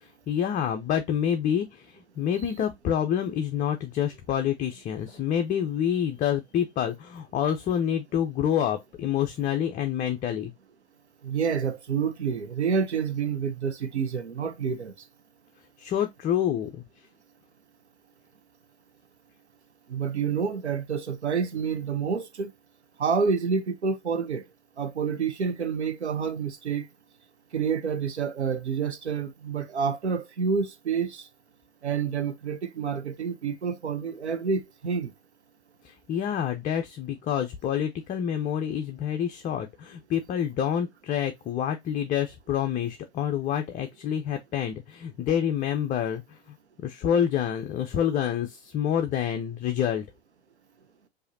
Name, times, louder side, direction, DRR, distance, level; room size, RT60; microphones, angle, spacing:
voice 1, 0.0-10.5 15.8-16.8 35.8-46.4 46.8-50.0, left 9 dB, 25° left, 0.5 m, -27 dB
voice 2, 11.2-14.9 19.9-22.5 23.0-24.4 24.8-26.8 27.5-31.2 31.8-35.1, right 6 dB, 85° right, 0.9 m, -28 dB
4.8 x 2.7 x 2.6 m
figure-of-eight pair, 95°, 33 cm